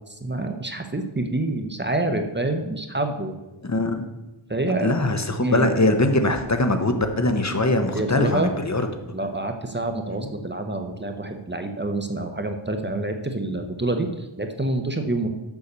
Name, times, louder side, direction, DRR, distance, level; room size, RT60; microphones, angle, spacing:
voice 1, 0.2-3.4 4.5-4.9 5.4-5.7 7.9-8.5 9.1-15.3, right 2 dB, 20° right, 5 dB, 0.9 m, -27 dB
voice 2, 3.6-4.1 4.8-8.8 10.2-10.3, left 2 dB, 35° left, 7 dB, 0.9 m, -22 dB
7.1 x 6.5 x 6.7 m, 1.0 s
wide cardioid pair, 80°, 50 cm